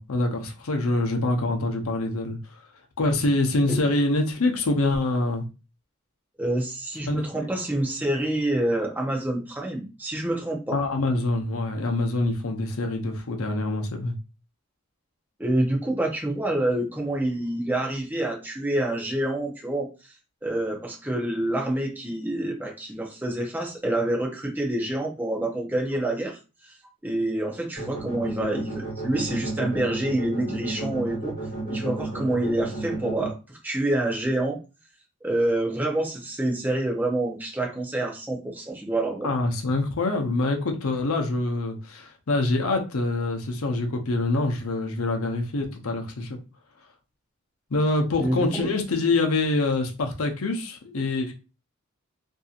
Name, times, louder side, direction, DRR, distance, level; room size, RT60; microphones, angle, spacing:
voice 1, 0.0-2.4 3.0-5.4 7.1-7.2 10.7-14.1 39.2-46.4 47.7-51.3, left 2 dB, 75° left, 0.7 m, -25 dB
voice 2, 6.4-10.8 15.4-19.9 20.4-26.4 27.0-31.3 31.6-34.6 35.2-39.3 48.2-48.7, right 1 dB, 10° right, 0.6 m, -27 dB
sound 1, 27.8-33.3, right 2 dB, 40° left, 1.5 m, -33 dB
2.7 x 2.7 x 2.4 m
head